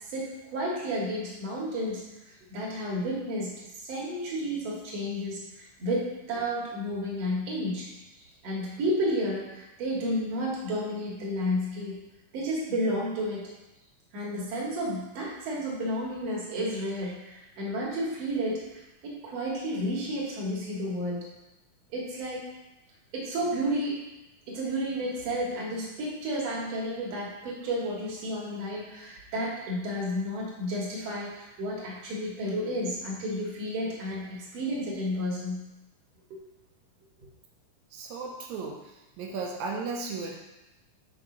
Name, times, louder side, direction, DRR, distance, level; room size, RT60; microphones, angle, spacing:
voice 1, 0.1-2.0 2.5-3.5 3.8-7.9 8.4-12.0 12.3-13.4 14.1-21.2 21.9-22.5 23.1-24.0 24.5-35.6 36.3-36.4, equal, 55° right, -4 dB, 2.3 m, -31 dB
voice 2, 37.9-38.8 39.2-40.4, right 4 dB, 75° right, 1 dB, 1.8 m, -35 dB
5.8 x 5.2 x 3.9 m, 0.97 s
omnidirectional pair, 3.9 m